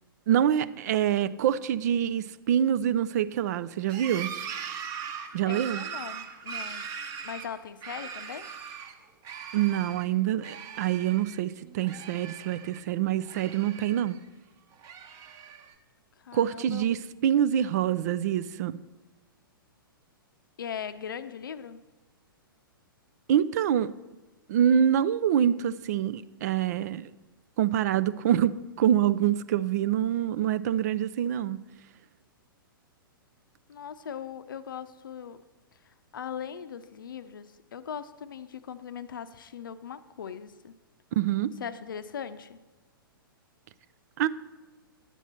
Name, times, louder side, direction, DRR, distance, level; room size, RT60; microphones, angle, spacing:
voice 1, 0.3-4.3 5.3-5.9 9.5-14.2 16.3-18.7 23.3-23.9 24.5-27.1 27.6-31.6 41.2-41.5 44.2-44.3, right 10 dB, 45° right, 16 dB, 0.4 m, -26 dB
sound 1, 3.8-8.9 9.2-10.1 10.4-11.4 11.6-12.8 13.2-14.2 14.7-15.7, right 7 dB, 30° right, 1.0 m, -40 dB
voice 2, 5.5-6.9 7.2-8.5 16.2-16.8 20.6-21.8 33.7-35.4 35.8-40.7 41.6-42.6, left 8 dB, 65° left, 13 dB, 0.6 m, -39 dB
10.5 x 8.1 x 4.3 m, 1.2 s
figure-of-eight pair, 110°, 12 cm